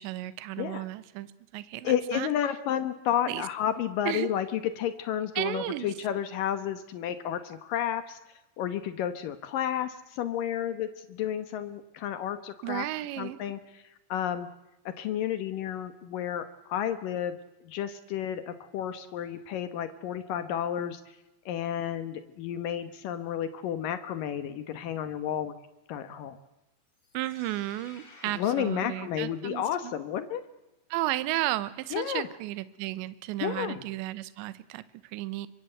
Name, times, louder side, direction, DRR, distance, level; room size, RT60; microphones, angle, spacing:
voice 1, 0.0-2.3 3.2-3.5 4.1-4.3 5.4-5.9 12.6-13.4 27.1-29.9 30.9-35.5, right 16 dB, 75° right, 16 dB, 3.1 m, -33 dB
voice 2, 1.8-8.2 8.6-12.9 13.2-13.6 14.1-14.5 15.0-17.4 17.6-21.0 21.5-25.6 25.9-26.4 28.3-30.4 31.9-32.3 33.4-33.8, left 10 dB, 80° left, 11 dB, 1.9 m, -31 dB
sound 1, 26.9-30.0, left 2 dB, 40° left, 8.8 m, -55 dB
25.0 x 24.0 x 8.0 m, 0.95 s
omnidirectional pair, 5.7 m